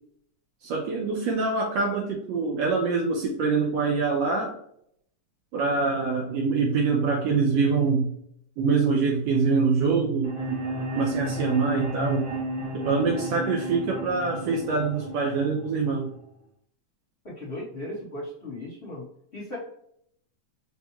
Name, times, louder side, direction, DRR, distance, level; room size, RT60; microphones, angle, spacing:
voice 1, 0.6-4.5 5.5-8.1 8.6-10.6 11.0-12.3 12.7-16.1, right 4 dB, 85° right, -1 dB, 1.5 m, -25 dB
sound 1, 10.2-16.2, equal, 70° right, 0.4 m, -33 dB
voice 2, 17.2-19.1 19.3-19.6, left 1 dB, 40° left, -7 dB, 0.8 m, -36 dB
5.2 x 2.3 x 2.9 m, 0.69 s
omnidirectional pair, 3.7 m